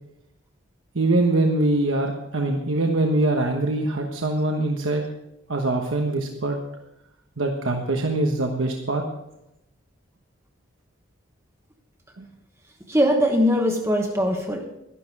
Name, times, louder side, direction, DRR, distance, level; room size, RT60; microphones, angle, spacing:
voice 1, 0.9-5.0 5.5-6.6 7.4-9.0 12.2-12.3, right 2 dB, 80° right, 2 dB, 1.2 m, -23 dB
voice 2, 12.9-14.7, equal, 15° right, 3 dB, 1.1 m, -21 dB
12.0 x 11.5 x 4.7 m, 0.86 s
head